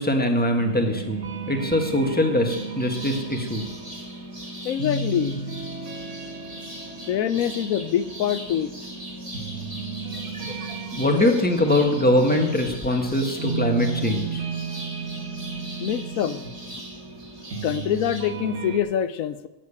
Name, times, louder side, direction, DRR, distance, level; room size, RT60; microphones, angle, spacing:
voice 1, 0.0-3.6 10.9-14.4, left 1 dB, 5° left, 3 dB, 1.5 m, -22 dB
Soundscape - Dust - Ambient Guitar, 0.6-18.8, right 4 dB, 60° right, 1.8 m, -34 dB
sound 1, 2.5-18.2, equal, 25° right, 2.8 m, -41 dB
voice 2, 4.6-5.4 7.1-8.7 15.8-16.4 17.6-19.5, left 10 dB, 85° left, 13 dB, 1.1 m, -25 dB
sound 2, 10.0-14.0, right 2 dB, 40° right, 2.1 m, -40 dB
12.5 x 7.4 x 8.6 m, 1.1 s
omnidirectional pair, 1.4 m